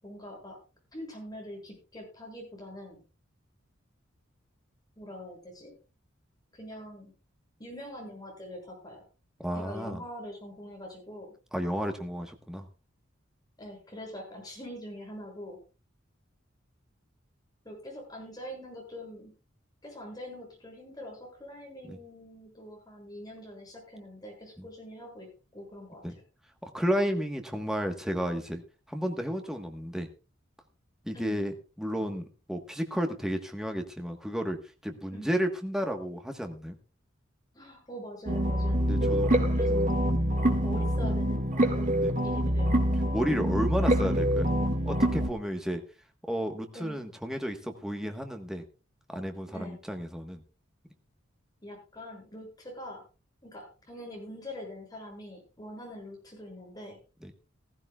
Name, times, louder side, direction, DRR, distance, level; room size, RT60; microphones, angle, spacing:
voice 1, 0.0-0.6 0.9-3.0 5.0-5.7 6.5-7.1 7.6-9.0 9.5-11.3 13.6-15.6 17.6-19.3 19.8-26.2 31.1-31.4 35.1-35.3 37.5-39.9 40.5-42.7 46.7-47.0 49.5-49.8 51.6-53.0 53.4-57.0, left 1 dB, 20° left, 0 dB, 6.8 m, -44 dB
voice 2, 9.4-10.0 11.5-12.7 21.8-22.0 26.0-26.1 26.7-28.6 28.9-30.1 31.0-34.6 34.8-36.8 38.9-39.3 42.0-42.1 43.1-44.5 44.8-45.8 46.3-48.6 49.1-50.4 57.2-57.3, equal, 5° right, 4 dB, 1.3 m, -32 dB
sound 1, 38.3-45.3, equal, 40° right, 2.0 m, -26 dB
16.0 x 15.5 x 2.4 m, 0.34 s
head